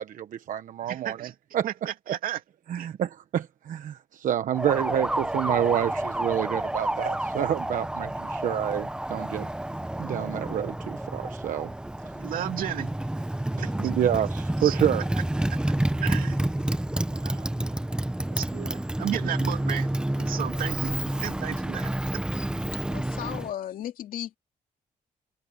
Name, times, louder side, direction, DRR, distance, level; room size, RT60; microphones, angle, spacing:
voice 1, 0.0-1.7 2.1-2.2 2.7-9.5 10.0-11.7 13.6-15.1, right 10 dB, 70° right, 1.1 m, -28 dB
voice 2, 0.9-1.3 1.6-2.4 2.8-2.9 12.2-12.9 13.8-13.9 14.6-14.8 16.0-16.4 17.1-17.5 18.3-19.9 20.2-20.9 21.2-21.9, right 11 dB, 90° right, 2.7 m, -33 dB
Motorcycle, 4.5-23.5, right 1 dB, 5° right, 0.8 m, -29 dB
voice 3, 22.9-24.4, left 11 dB, 85° left, 2.5 m, -35 dB
cardioid pair, 125°, 14 cm